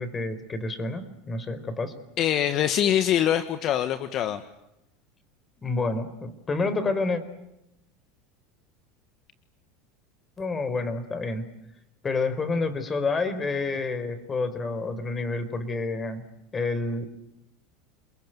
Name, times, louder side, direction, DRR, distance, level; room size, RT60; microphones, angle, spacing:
voice 1, 0.0-1.9 5.6-7.2 10.4-11.5 12.0-16.2 16.5-17.0, left 3 dB, 25° left, 12 dB, 4.5 m, -29 dB
voice 2, 2.2-4.4, left 10 dB, 50° left, 10 dB, 1.6 m, -24 dB
29.0 x 21.5 x 9.3 m, 0.86 s
supercardioid pair, 105°, 0 cm